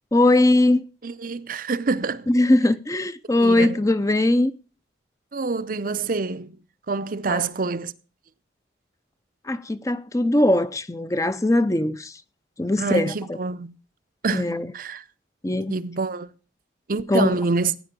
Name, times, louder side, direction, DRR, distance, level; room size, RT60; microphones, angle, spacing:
voice 1, 0.1-0.9 2.3-4.5 7.3-7.4 9.4-12.2 12.6-13.4 14.3-14.7 15.4-15.8 17.1-17.4, left 1 dB, 15° left, 0.5 m, -20 dB
voice 2, 1.0-2.3 3.4-3.8 5.3-6.6 6.9-7.9 12.8-13.8 14.2-15.0 15.7-16.3 16.9-17.7, right 4 dB, 45° right, 0.6 m, -26 dB
16.0 x 9.5 x 5.2 m
head